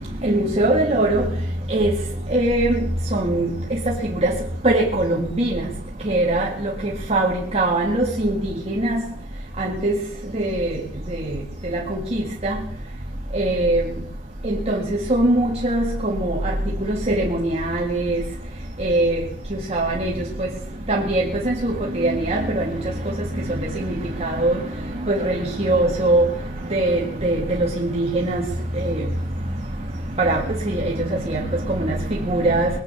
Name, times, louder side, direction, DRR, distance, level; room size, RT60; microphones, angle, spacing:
voice 1, 0.2-1.2 1.7-1.9 2.3-2.7 3.1-3.5 4.2-4.3 4.6-5.6 6.1-6.5 7.1-8.4 8.7-9.0 9.6-9.9 10.4-10.7 11.9-12.0 12.4-12.5 13.4-13.8 14.5-14.8 15.1-16.3 16.8-18.2 18.8-19.1 19.7-20.1 20.9-22.6 23.8-23.9 24.2-24.6 25.1-26.2 26.7-28.4 30.2-30.4 30.7-30.8 31.3-31.4 32.3-32.7, right 2 dB, 35° right, 1.8 m, -21 dB
21.0 x 8.8 x 6.8 m
head